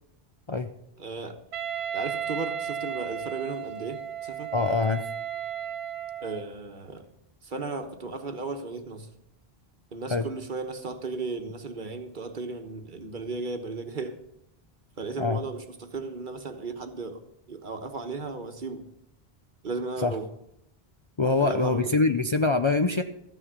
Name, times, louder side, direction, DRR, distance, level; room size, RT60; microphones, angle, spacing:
voice 1, 1.0-1.4 1.9-4.5 6.2-7.1 7.4-9.1 9.9-14.2 15.0-18.8 19.6-20.3 21.2-21.9, right 3 dB, 50° right, 7 dB, 1.2 m, -35 dB
Wind instrument woodwind instrument, 1.5-6.5, right 9 dB, 80° right, 1.1 m, -34 dB
voice 2, 4.5-5.1 10.1-10.3 15.2-15.4 20.0-20.1 21.2-23.0, left 3 dB, 35° left, 6 dB, 0.5 m, -24 dB
13.5 x 6.3 x 8.0 m, 0.80 s
omnidirectional pair, 1.1 m